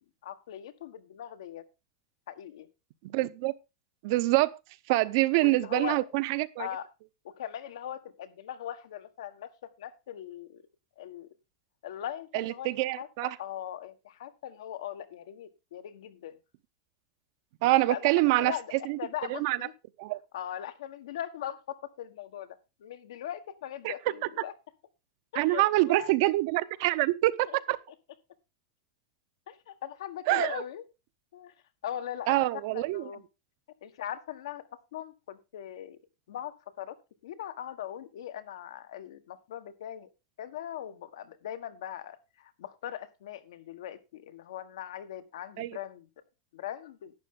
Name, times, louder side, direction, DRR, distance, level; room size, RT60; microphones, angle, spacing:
voice 1, 0.2-1.6 2.3-2.7 5.4-6.1 6.6-6.9 7.2-10.6 11.0-11.3 11.8-16.4 17.9-19.7 20.3-24.5 25.3-26.1 27.5-27.6 29.5-30.8 31.3-31.5 31.8-32.4 32.7-33.2 33.8-36.0 36.3-37.0 37.2-40.1 40.4-46.1 46.5-47.1, left 10 dB, 85° left, 1.5 m, -40 dB
voice 2, 3.1-3.5 4.0-4.5 4.9-6.7 12.3-13.4 17.6-18.5 18.9-19.0 19.3-19.6 20.0-20.2 23.8-23.9 25.3-27.8 30.3-30.6 32.3-33.0 45.6-45.8, right 19 dB, 50° right, 0.7 m, -26 dB
11.5 x 8.8 x 3.8 m
supercardioid pair, 160°, 3 cm